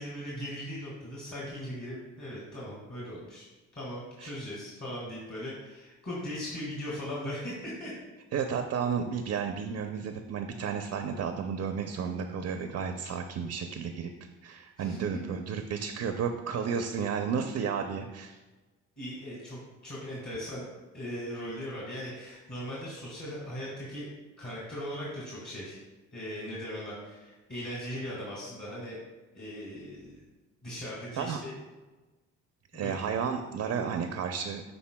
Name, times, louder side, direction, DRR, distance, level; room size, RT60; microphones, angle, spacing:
voice 1, 0.0-3.5 3.7-7.9 14.8-15.0 19.0-20.6 20.9-24.1 24.4-25.8 26.1-29.0 29.3-30.2 30.6-31.5 32.7-32.9, equal, 35° left, -6 dB, 2.1 m, -39 dB
voice 2, 8.3-14.1 14.4-18.4 31.2-31.4 32.7-34.6, right 6 dB, 60° right, 6 dB, 0.6 m, -32 dB
11.5 x 4.0 x 2.2 m, 1.2 s
cardioid pair, 90°, 30 cm